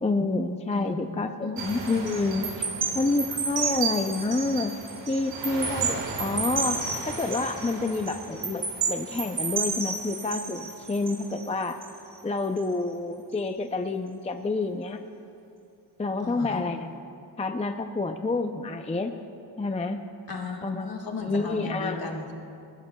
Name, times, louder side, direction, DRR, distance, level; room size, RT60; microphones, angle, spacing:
voice 1, 0.0-2.7 2.9-4.7 5.1-6.8 7.1-10.6 10.9-11.8 12.2-15.0 16.0-16.9 17.4-19.1 19.6-20.0 20.6-20.9 21.2-22.1, left 3 dB, 15° left, 6 dB, 0.4 m, -28 dB
sound 1, 1.6-12.1 12.6-12.8, right 5 dB, 85° right, 1.7 m, -31 dB
voice 2, 16.2-16.7 20.3-22.3, left 3 dB, 55° left, 0 dB, 1.7 m, -35 dB
21.0 x 16.0 x 2.2 m, 2.6 s
wide cardioid pair, 110°, 42 cm